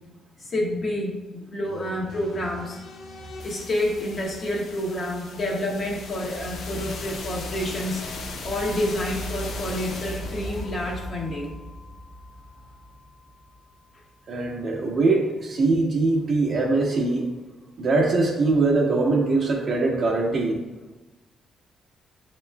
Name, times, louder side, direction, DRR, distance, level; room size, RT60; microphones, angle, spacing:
voice 1, 0.4-2.8 3.4-8.0 8.4-11.6, left 1 dB, 45° left, -2 dB, 1.1 m, -29 dB
sound 1, 1.6-13.5, left 2 dB, 65° left, 0.6 m, -37 dB
voice 2, 14.3-17.3 17.8-20.6, right 3 dB, 50° right, -2 dB, 1.0 m, -22 dB
7.0 x 3.0 x 2.3 m, 1.1 s
cardioid pair, 90°, 0 cm